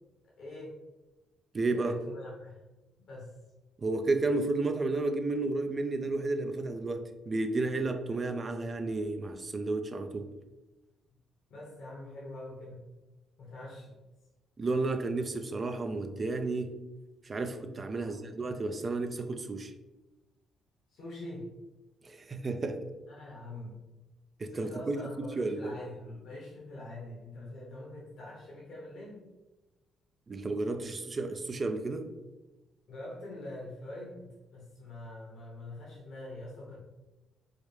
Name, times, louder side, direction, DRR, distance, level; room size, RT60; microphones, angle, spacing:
voice 1, 0.4-0.7 1.7-2.6 3.1-3.3 11.5-12.8 13.4-13.9 17.9-18.3 20.9-21.5 23.1-23.8 24.5-29.3 32.9-36.8, left 1 dB, 70° left, -5 dB, 1.1 m, -44 dB
voice 2, 1.5-2.0 3.8-10.3 14.6-16.8 17.2-19.7 22.0-22.9 24.4-25.0 25.3-25.8 30.3-32.1, right 3 dB, 35° right, 7 dB, 0.4 m, -32 dB
4.8 x 2.1 x 3.3 m, 1.1 s
cardioid pair, 90°, 0 cm